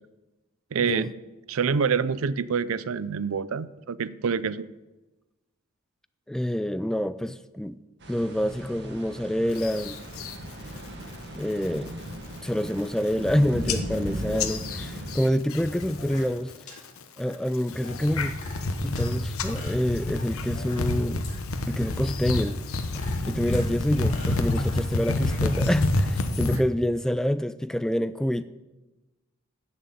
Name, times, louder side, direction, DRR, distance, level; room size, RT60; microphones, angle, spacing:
voice 1, 0.7-1.1 1.5-4.7, right 6 dB, 75° right, 17 dB, 0.5 m, -26 dB
voice 2, 6.3-7.8 8.1-10.0 11.4-11.9 12.4-16.5 17.2-18.3 18.8-21.3 21.7-22.6 23.3-28.4, equal, 5° left, 14 dB, 0.3 m, -27 dB
sound 1, 8.0-15.2, equal, 55° right, 1.7 m, -37 dB
sound 2, 9.5-10.4 10.8-11.1 11.5-11.9 12.3-12.4 12.7-13.3 13.7-16.2 16.5-17.0 17.5-26.6, left 2 dB, 80° left, 1.0 m, -28 dB
sound 3, 16.0-16.4 16.7-16.8 17.3-17.4 17.8-19.1 19.5-21.0 21.2-21.3 21.8-21.9 22.4-23.7 24.1-25.5 25.8-25.9 26.4-26.5, left 3 dB, 35° left, 2.6 m, -44 dB
11.0 x 6.5 x 8.8 m, 1.1 s
head